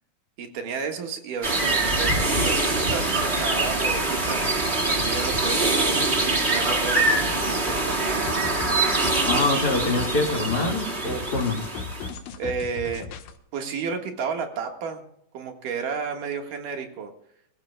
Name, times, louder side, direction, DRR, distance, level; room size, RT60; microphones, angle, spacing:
voice 1, 0.4-8.3 12.4-13.1 13.5-15.0 15.3-17.1, right 5 dB, 70° right, 4 dB, 3.2 m, -32 dB
sound 1, 1.4-12.1, right 2 dB, 20° right, 1.9 m, -24 dB
sound 2, 8.3-13.4, left 5 dB, 80° left, 2.9 m, -37 dB
voice 2, 9.2-11.6, left 3 dB, 35° left, 2 dB, 2.0 m, -25 dB
25.5 x 15.5 x 2.3 m, 0.73 s
omnidirectional pair, 4.0 m